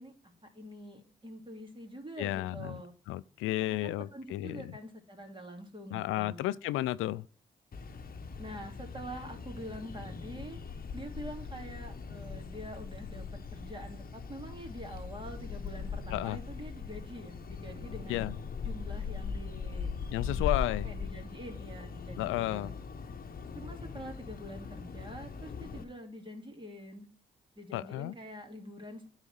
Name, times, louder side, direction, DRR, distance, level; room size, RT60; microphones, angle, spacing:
voice 1, 0.0-2.9 3.6-6.5 8.4-10.6 10.9-13.2 13.5-18.3 18.6-19.9 20.2-22.7 23.5-27.1 27.6-29.1, equal, 25° right, 2.8 m, -46 dB
voice 2, 2.2-2.8 3.1-4.7 5.9-7.3 16.1-16.4 18.1-18.4 20.1-20.9 22.2-22.7 27.7-28.1, left 15 dB, 80° left, 0.4 m, -33 dB
sound 1, 7.7-25.8, left 5 dB, 45° left, 1.0 m, -40 dB
9.7 x 4.1 x 6.3 m
supercardioid pair, 50°, 20 cm